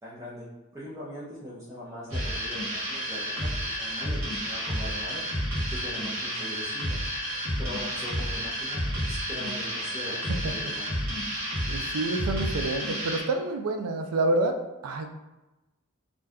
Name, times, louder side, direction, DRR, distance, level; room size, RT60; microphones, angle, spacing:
voice 1, 0.0-0.5 0.7-5.2 5.7-7.0 7.6-10.9, equal, 15° right, -8 dB, 0.4 m, -41 dB
sound 1, 2.1-13.2, equal, 65° right, 1.1 m, -31 dB
voice 2, 11.7-14.5 14.8-15.1, right 2 dB, 80° right, 5 dB, 0.4 m, -28 dB
2.5 x 2.2 x 3.4 m, 1.1 s
head